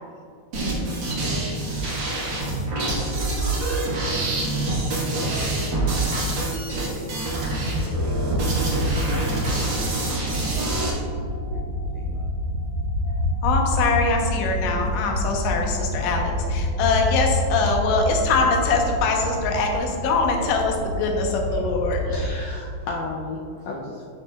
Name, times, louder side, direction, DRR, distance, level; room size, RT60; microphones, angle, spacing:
sound 1, 0.5-10.9, right 2 dB, 60° right, 1.2 m, -26 dB
voice 1, 3.3-3.7 4.2-4.5 5.2-5.8 6.4-7.4 8.0-8.5 9.6-11.6 11.9-12.3, right 3 dB, 75° right, 0 dB, 2.7 m, -41 dB
sound 2, 7.6-22.3, left 1 dB, 50° left, 2.1 m, -27 dB
voice 2, 13.4-22.0, left 4 dB, 70° left, 1 dB, 2.2 m, -23 dB
voice 3, 22.1-24.0, left 3 dB, 90° left, -2 dB, 1.7 m, -33 dB
11.5 x 5.9 x 2.3 m, 2.3 s
omnidirectional pair, 4.3 m